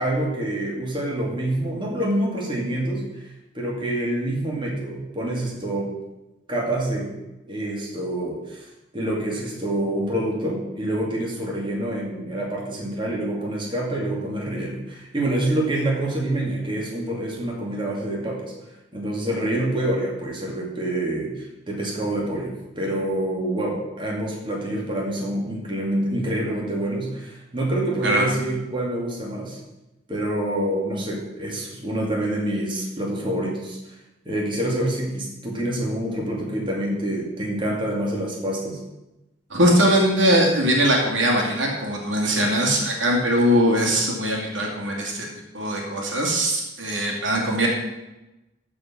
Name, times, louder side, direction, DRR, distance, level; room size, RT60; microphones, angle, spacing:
voice 1, 0.0-3.0 3.5-5.9 6.5-7.1 7.5-18.5 18.9-29.6 30.1-33.9 34.2-38.8, right 1 dB, 25° right, -2 dB, 2.4 m, -26 dB
voice 2, 39.5-45.3 45.5-47.7, equal, 90° right, -1 dB, 2.6 m, -21 dB
14.5 x 4.8 x 6.1 m, 0.99 s
head